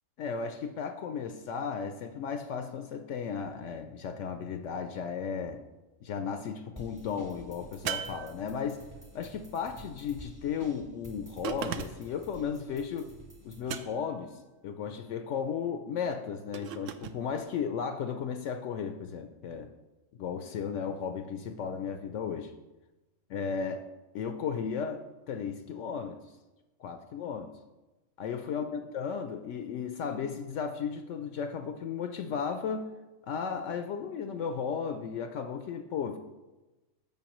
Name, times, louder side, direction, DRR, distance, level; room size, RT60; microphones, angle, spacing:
voice 1, 0.2-5.6 6.0-8.8 9.1-13.1 13.4-19.7 20.2-22.5 23.3-23.9 24.1-26.2 26.8-27.5 28.2-32.9 33.2-36.2, left 6 dB, 70° left, 7 dB, 0.9 m, -35 dB
sound 1, 6.8-13.6, right 1 dB, 20° right, 0.7 m, -50 dB
sound 2, 7.9-9.0 11.4-12.2 13.7-14.3 16.5-17.2, right 9 dB, 75° right, 0.9 m, -37 dB
14.5 x 5.4 x 3.0 m, 1.1 s
omnidirectional pair, 1.4 m